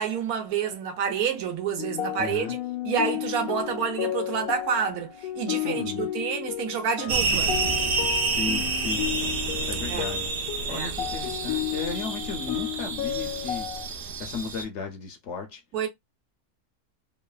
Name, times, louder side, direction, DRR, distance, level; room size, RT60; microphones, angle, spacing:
voice 1, 0.0-2.6 2.8-7.5 9.9-10.1 10.7-10.9 15.7-15.9, right 7 dB, 85° right, 1.2 m, -28 dB
sound 1, 1.8-13.9, left 13 dB, 80° left, 1.1 m, -33 dB
voice 2, 2.2-2.6 5.6-6.1 7.3-7.5 8.2-9.1 9.7-10.3 10.7-13.7 14.2-15.6, left 5 dB, 65° left, 0.8 m, -35 dB
sound 2, 7.1-14.6, right 4 dB, 65° right, 0.5 m, -29 dB
3.0 x 2.1 x 2.3 m
omnidirectional pair, 1.5 m